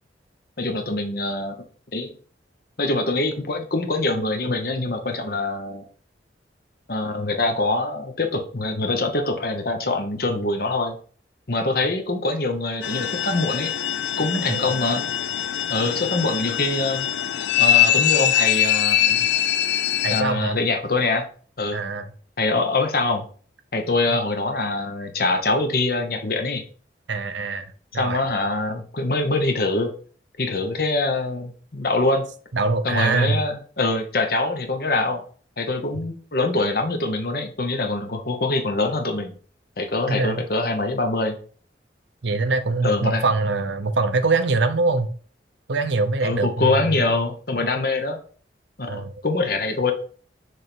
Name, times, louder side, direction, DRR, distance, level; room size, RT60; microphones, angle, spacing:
voice 1, 0.6-1.5 1.9-2.1 2.8-5.8 6.9-11.0 11.5-13.7 14.2-15.0 15.7-17.1 17.6-19.3 20.1-21.3 21.6-21.8 22.4-23.2 23.7-26.6 27.9-29.9 30.4-32.2 32.8-35.2 35.6-39.3 39.8-41.4 42.8-43.2 46.2-48.2 48.8-49.9, left 2 dB, 55° left, 5 dB, 1.0 m, -24 dB
sound 1, 12.8-20.2, left 11 dB, 75° left, 0.4 m, -22 dB
voice 2, 20.0-20.6 21.7-22.1 24.1-24.2 27.1-28.2 32.5-33.4 40.1-40.4 42.2-45.1 45.7-46.8 48.9-49.2, right 3 dB, 75° right, 9 dB, 0.7 m, -23 dB
6.3 x 3.4 x 4.5 m, 0.43 s
head